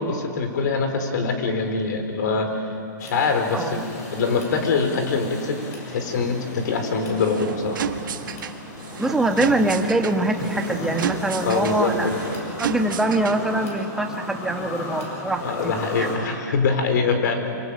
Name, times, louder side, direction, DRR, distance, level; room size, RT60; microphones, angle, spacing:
voice 1, 0.0-2.6 3.0-5.6 5.9-7.8 11.4-12.2 15.4-17.5, left 4 dB, 65° left, 6 dB, 4.6 m, -24 dB
sound 1, 3.0-16.2, left 2 dB, 50° left, 7.8 m, -34 dB
voice 2, 3.5-3.8 9.0-12.1 12.6-16.1, right 2 dB, 5° right, 4 dB, 1.5 m, -24 dB
sound 2, 7.0-13.6, right 8 dB, 85° right, 1.5 m, -32 dB
26.5 x 24.0 x 9.0 m, 2.6 s
hypercardioid pair, 155°, 11 cm